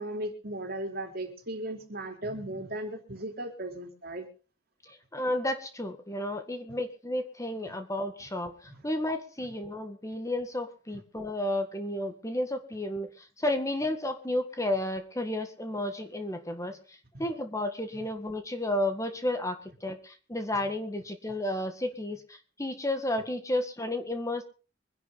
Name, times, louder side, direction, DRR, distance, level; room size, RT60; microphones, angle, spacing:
voice 1, 0.0-4.3 7.7-7.8 8.7-8.8 10.9-11.0 17.1-17.3, right 1 dB, 55° right, 4 dB, 3.9 m, -37 dB
voice 2, 5.1-8.5 8.8-13.1 13.4-16.8 17.2-24.4, left 1 dB, 15° left, 7 dB, 1.8 m, -32 dB
24.0 x 11.0 x 4.1 m, 0.37 s
head